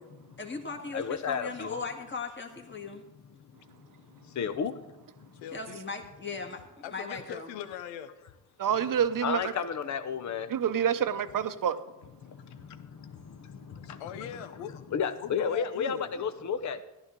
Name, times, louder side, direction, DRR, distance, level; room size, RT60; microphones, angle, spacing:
voice 1, 0.4-3.0 5.5-7.5, left 4 dB, 25° left, 3 dB, 1.8 m, -38 dB
voice 2, 0.9-1.8 4.3-4.8 9.2-10.5 12.2-14.3 14.9-16.8, left 6 dB, 40° left, 11 dB, 0.8 m, -33 dB
voice 3, 5.3-5.8 6.8-8.1 12.5-12.6 13.1-13.2 13.7-14.8 15.2-16.1, left 9 dB, 85° left, 11 dB, 0.8 m, -41 dB
voice 4, 8.6-9.4 10.5-11.8, right 8 dB, 45° right, 11 dB, 0.8 m, -27 dB
14.5 x 11.0 x 3.8 m, 1.0 s
supercardioid pair, 60°, 44 cm